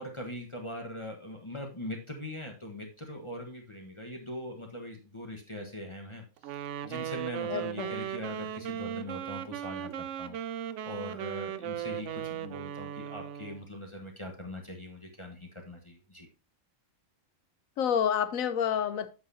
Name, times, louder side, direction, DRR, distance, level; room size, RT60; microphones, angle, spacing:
voice 1, 0.0-10.4 10.8-16.3, left 1 dB, 25° left, 1 dB, 1.3 m, -41 dB
Wind instrument woodwind instrument, 6.4-13.7, right 10 dB, 70° right, 0.8 m, -37 dB
voice 2, 7.5-7.9 17.8-19.2, left 8 dB, 85° left, 12 dB, 1.2 m, -29 dB
8.3 x 7.6 x 2.8 m, 0.31 s
omnidirectional pair, 1.4 m